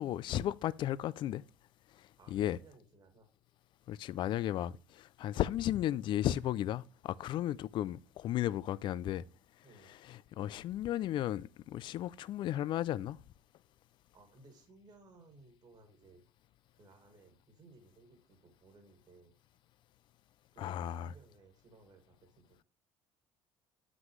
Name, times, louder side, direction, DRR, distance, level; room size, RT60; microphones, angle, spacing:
voice 1, 0.0-1.4 2.3-2.6 3.9-9.2 10.1-13.2 20.6-21.1, left 12 dB, 50° left, 0.4 m, -34 dB
voice 2, 2.2-3.3 9.6-9.9 14.1-16.3 16.7-19.4 20.5-22.6, right 3 dB, 45° right, 2.2 m, -60 dB
7.3 x 6.1 x 3.1 m
supercardioid pair, 105°, 10 cm